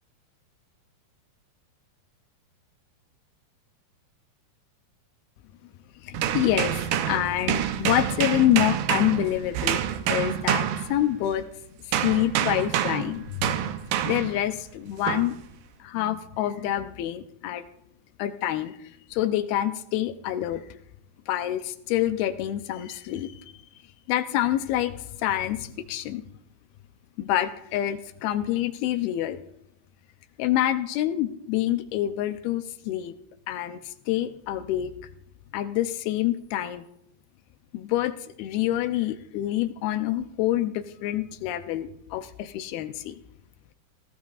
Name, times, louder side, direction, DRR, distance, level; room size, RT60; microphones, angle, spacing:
voice 1, 6.0-9.8 10.1-11.5 11.8-13.5 14.0-15.4 15.8-17.6 18.2-18.8 19.1-20.6 21.3-23.4 24.1-26.2 27.2-29.4 30.4-33.1 33.5-34.9 35.5-36.9 37.7-43.2, left 13 dB, 80° left, 10 dB, 2.4 m, -27 dB
sound 1, 6.1-11.4 11.9-14.4 15.1-15.4, right 10 dB, 75° right, 2.0 m, -27 dB
18.5 x 17.0 x 2.4 m, 0.77 s
omnidirectional pair, 4.6 m